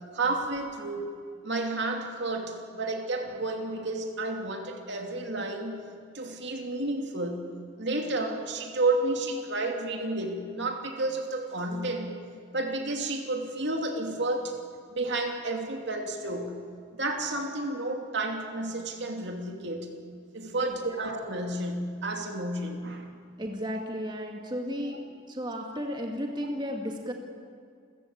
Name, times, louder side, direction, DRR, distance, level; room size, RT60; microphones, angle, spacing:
voice 1, 0.1-1.1 1.4-5.8 6.1-7.4 7.8-12.1 12.5-14.6 14.9-16.5 17.0-19.9 20.3-23.1 24.8-24.9, right 2 dB, 60° right, 3 dB, 2.8 m, -31 dB
voice 2, 20.6-21.0 23.4-25.0 25.3-27.1, equal, 20° right, 2 dB, 2.2 m, -34 dB
29.0 x 15.5 x 8.7 m, 2.1 s
head